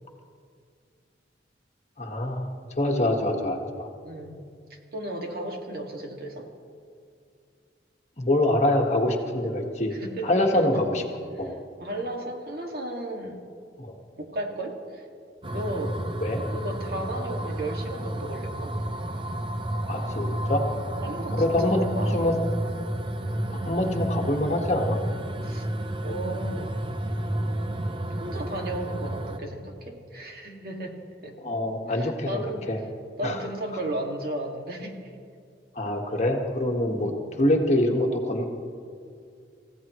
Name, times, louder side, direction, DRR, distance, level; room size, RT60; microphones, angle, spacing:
voice 1, 2.0-3.9 8.2-10.0 10.2-11.0 11.4-11.5 13.8-13.9 16.2-16.4 19.9-20.6 21.4-21.8 22.1-22.4 23.7-25.0 31.4-32.8 33.2-33.4 35.7-37.1 37.4-38.5, left 1 dB, 40° left, 2 dB, 1.6 m, -25 dB
voice 2, 4.0-4.4 4.7-6.5 9.9-10.4 11.8-13.4 14.2-15.1 15.5-16.0 16.5-18.7 21.0-22.3 25.4-25.7 26.0-26.7 28.1-31.4 31.9-32.7 33.2-35.0 37.0-37.3, right 1 dB, 55° right, 1 dB, 2.1 m, -34 dB
sound 1, 15.4-29.4, right 1 dB, 30° right, 0.7 m, -31 dB
28.0 x 15.5 x 3.1 m, 2.3 s
head